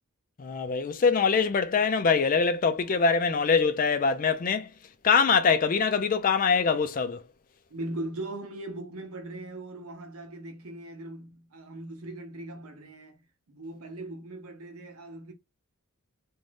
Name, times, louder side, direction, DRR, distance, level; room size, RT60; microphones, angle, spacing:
voice 1, 0.4-4.7 5.0-7.2, left 5 dB, 40° left, 0.4 m, -23 dB
voice 2, 7.7-13.2 13.5-15.3, right 1 dB, 85° right, 0.8 m, -39 dB
2.6 x 2.2 x 3.3 m
head